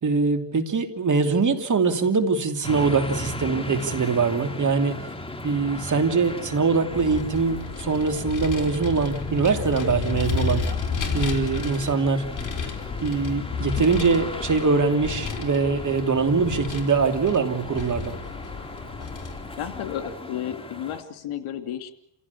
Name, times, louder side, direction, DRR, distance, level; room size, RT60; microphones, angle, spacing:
voice 1, 0.0-5.0 5.4-10.6 11.1-12.2 13.0-18.1, right 4 dB, 35° right, 6 dB, 3.1 m, -23 dB
sound 1, 2.6-21.0, left 1 dB, 10° left, 2.6 m, -37 dB
Vehicle, 6.9-20.1, left 5 dB, 40° left, 4.1 m, -32 dB
voice 2, 19.6-21.9, left 10 dB, 70° left, 8 dB, 2.7 m, -32 dB
28.5 x 16.5 x 8.4 m, 0.79 s
cardioid pair, 110°, 49 cm